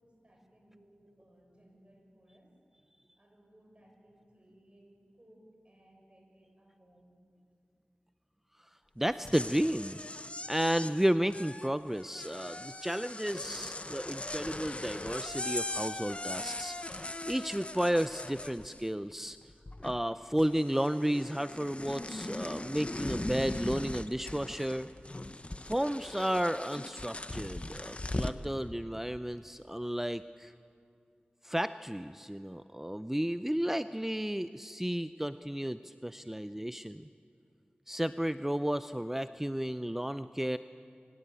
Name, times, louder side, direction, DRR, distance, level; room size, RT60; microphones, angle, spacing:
voice 1, 0.0-2.5 3.2-7.1, right 1 dB, 30° right, 1 dB, 6.8 m, -62 dB
voice 2, 9.0-10.0 10.5-19.4 19.8-24.9 25.7-30.5 31.4-37.1 37.9-40.6, equal, 10° right, 12 dB, 0.5 m, -33 dB
sound 1, 9.1-19.1 19.4-20.1 20.4-28.5, left 2 dB, 35° left, 0.9 m, -40 dB
24.0 x 17.5 x 8.4 m, 2.3 s
wide cardioid pair, 45°, 4 cm